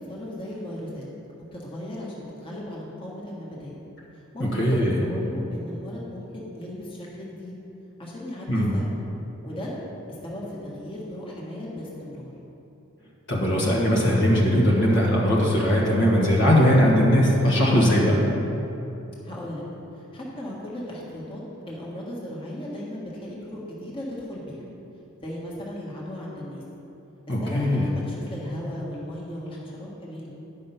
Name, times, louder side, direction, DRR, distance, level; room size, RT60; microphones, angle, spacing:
voice 1, 0.1-1.1 1.5-3.7 4.1-7.5 8.0-8.9 9.4-9.7 10.2-12.3 19.2-19.6 19.9-21.4 21.7-24.6 25.2-26.6 27.3-30.3, left 1 dB, 25° left, -5 dB, 1.6 m, -36 dB
voice 2, 4.5-5.0 8.5-8.7 13.3-18.2 27.3-27.9, equal, 55° left, -4 dB, 1.4 m, -20 dB
10.5 x 5.4 x 5.7 m, 2.9 s
head